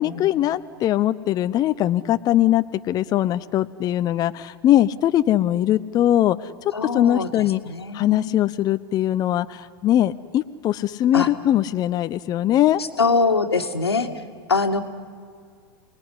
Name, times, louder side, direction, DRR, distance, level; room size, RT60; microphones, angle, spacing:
voice 1, 0.0-6.5 6.9-7.6 7.9-12.8, left 12 dB, 30° left, 12 dB, 0.7 m, -21 dB
voice 2, 6.7-8.4 11.1-11.3 12.8-14.1 14.5-14.8, left 4 dB, 85° left, 7 dB, 2.0 m, -23 dB
28.5 x 20.0 x 9.9 m, 2.1 s
figure-of-eight pair, 100°, 13 cm